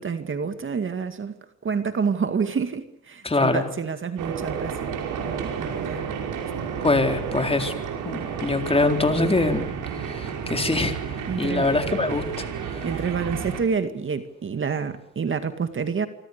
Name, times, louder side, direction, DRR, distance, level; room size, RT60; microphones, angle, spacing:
voice 1, 0.0-1.4 1.6-5.0 5.2-6.0 11.3-11.8 12.8-16.1, right 6 dB, 40° right, 2.1 m, -28 dB
voice 2, 3.2-3.7 6.8-7.7 8.0-9.7 10.0-12.9, left 2 dB, 20° left, 4.0 m, -24 dB
sound 1, 4.2-13.6, right 7 dB, 85° right, 5.4 m, -31 dB
26.0 x 25.0 x 6.8 m
cardioid pair, 90°, 30 cm